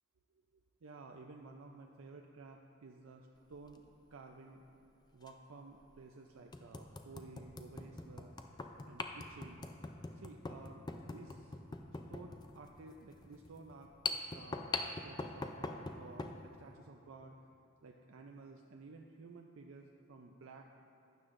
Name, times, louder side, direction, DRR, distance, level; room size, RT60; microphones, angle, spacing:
voice 1, 0.8-3.8 4.1-4.6 5.1-8.3 8.8-9.6 10.1-11.6 12.1-14.6 15.0-17.4 17.8-20.7, right 3 dB, 90° right, 2 dB, 0.5 m, -54 dB
sound 1, 3.5-3.8 5.2-5.3 5.9-6.0 6.5-16.4, left 3 dB, 20° left, 0.4 m, -43 dB
12.0 x 9.3 x 2.6 m, 2.9 s
head